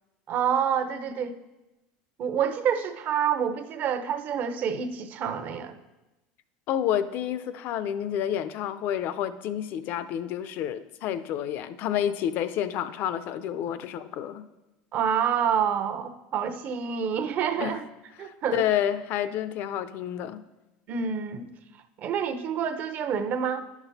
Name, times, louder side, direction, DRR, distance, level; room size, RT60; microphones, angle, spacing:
voice 1, 0.3-1.4 2.2-5.8 14.9-17.9 18.2-18.6 20.9-21.5 22.0-23.7, right 7 dB, 45° right, 9 dB, 0.8 m, -27 dB
voice 2, 6.7-14.5 17.6-17.8 18.2-20.4, left 10 dB, 55° left, 13 dB, 0.6 m, -29 dB
10.5 x 6.1 x 4.1 m, 1.0 s
supercardioid pair, 115°, 4 cm